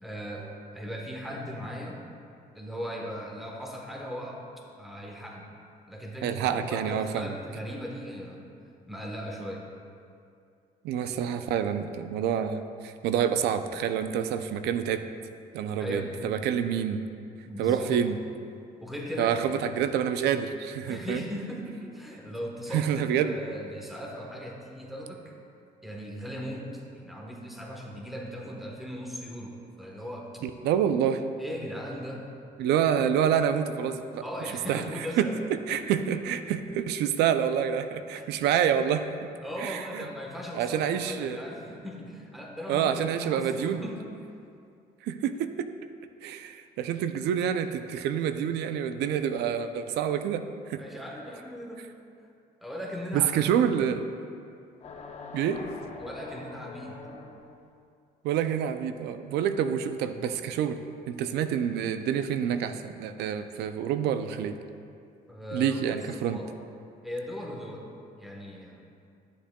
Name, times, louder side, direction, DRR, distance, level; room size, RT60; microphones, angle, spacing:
voice 1, 0.0-2.0 2.5-4.4 4.8-5.5 5.9-8.5 8.9-9.7 15.8-16.2 17.4-18.0 18.8-19.4 20.8-25.3 25.8-30.4 31.4-32.3 34.2-35.9 38.1-38.3 39.4-44.1 50.8-51.8 52.6-53.6 56.0-57.1 65.3-66.0 66.2-66.5 67.0-67.9 68.2-68.8, equal, ahead, -1 dB, 1.1 m, -38 dB
voice 2, 6.2-7.4 10.8-15.0 15.5-17.0 17.6-18.2 19.2-21.2 22.7-23.3 30.4-31.2 32.6-34.2 34.7-34.8 35.2-35.3 35.7-39.1 39.6-39.8 40.5-41.4 42.7-43.8 45.0-45.7 46.2-50.4 50.7-50.8 53.1-54.0 55.3-55.6 58.2-60.8 61.1-64.6 65.5-66.4, right 8 dB, 80° right, 10 dB, 0.4 m, -27 dB
sound 1, 54.8-57.7, left 4 dB, 40° left, 0.7 m, -43 dB
11.0 x 7.2 x 2.3 m, 2.4 s
cardioid pair, 110°, 17 cm